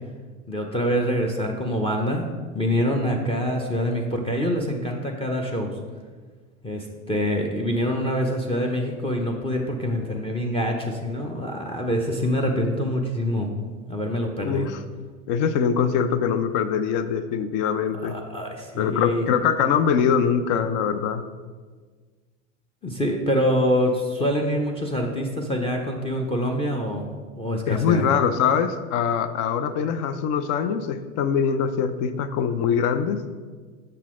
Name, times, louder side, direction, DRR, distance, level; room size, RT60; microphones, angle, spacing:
voice 1, 0.5-2.3 2.5-5.7 6.6-13.5 13.9-14.7 18.0-19.2 22.8-27.0 27.4-28.0, equal, 15° left, 2 dB, 0.7 m, -25 dB
voice 2, 14.4-14.8 15.3-18.1 18.8-21.2 27.7-33.2, left 7 dB, 50° left, 11 dB, 0.7 m, -23 dB
6.7 x 5.8 x 3.7 m, 1.5 s
hypercardioid pair, 90°, 40 cm